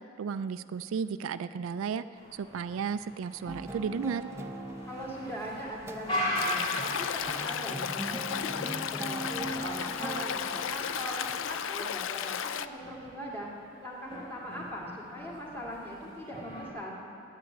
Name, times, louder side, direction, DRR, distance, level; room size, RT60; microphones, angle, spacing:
voice 1, 0.2-2.0 2.3-4.3, right 6 dB, 75° right, 13 dB, 0.3 m, -34 dB
sound 1, 2.2-16.7, equal, 25° left, 1.8 m, -40 dB
sound 2, 3.5-11.5, right 2 dB, 15° right, 0.6 m, -41 dB
voice 2, 4.9-8.6 8.9-11.2 11.5-13.5 13.8-17.0, equal, 10° left, -4 dB, 2.2 m, -40 dB
Stream, 6.3-12.7, left 9 dB, 70° left, 0.4 m, -34 dB
10.0 x 9.4 x 8.5 m, 2.7 s
head